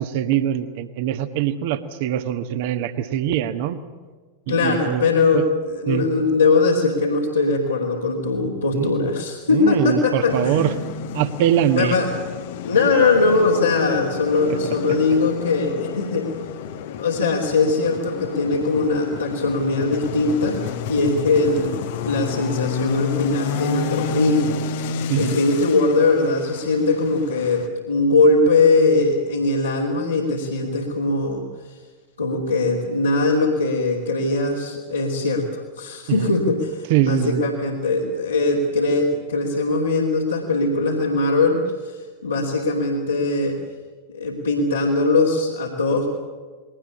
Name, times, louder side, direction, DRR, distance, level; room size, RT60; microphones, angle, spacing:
voice 1, 0.0-3.8 4.5-5.4 5.9-6.1 8.7-9.0 9.5-10.7 11.1-12.0 14.5-14.6 25.1-25.4 36.1-36.3 36.9-37.5, right 10 dB, 50° right, 10 dB, 1.4 m, -23 dB
voice 2, 4.5-10.7 11.7-12.1 12.6-16.3 17.0-31.4 32.2-43.6 44.1-46.1, left 3 dB, 80° left, -5 dB, 3.0 m, -21 dB
sound 1, 10.3-27.7, left 8 dB, 55° left, 1.0 m, -30 dB
21.0 x 18.5 x 8.6 m, 1.4 s
figure-of-eight pair, 90°, 0 cm